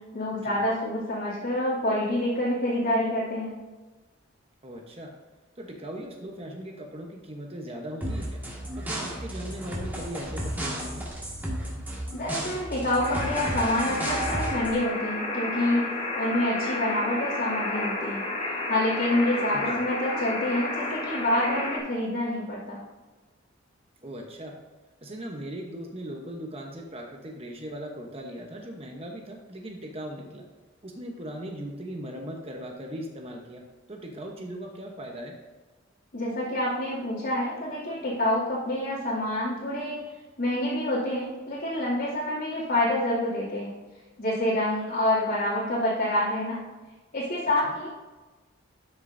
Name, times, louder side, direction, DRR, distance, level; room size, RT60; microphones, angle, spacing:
voice 1, 0.1-3.6 12.1-18.3 18.7-22.8 36.1-40.0 40.4-43.7 44.2-46.6 47.1-47.9, left 1 dB, 55° left, -9 dB, 2.5 m, -27 dB
voice 2, 4.6-5.1 5.6-8.4 8.8-11.1 19.5-19.8 24.0-24.6 25.0-30.4 30.8-33.6 33.9-35.3 47.6-47.7, right 1 dB, 30° right, 1 dB, 1.0 m, -39 dB
sound 1, 8.0-14.8, right 1 dB, 10° right, 1.9 m, -33 dB
sound 2, 13.0-21.8, left 2 dB, 35° left, 2.7 m, -31 dB
12.5 x 6.7 x 2.7 m, 1.2 s
head